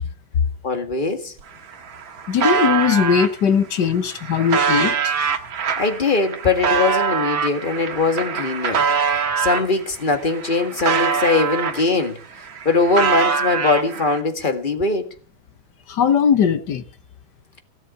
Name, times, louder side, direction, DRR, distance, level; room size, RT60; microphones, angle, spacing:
voice 1, 0.6-1.3 5.8-12.2 12.7-15.1, left 3 dB, 25° left, 1.8 m, -21 dB
sound 1, 1.4-1.5 1.7-3.3 3.9-9.7 10.2-12.1 12.4-14.2, right 6 dB, 70° right, 2.3 m, -23 dB
voice 2, 2.3-5.1 15.9-16.8, left 7 dB, 60° left, 1.8 m, -19 dB
17.0 x 7.4 x 9.6 m
omnidirectional pair, 2.3 m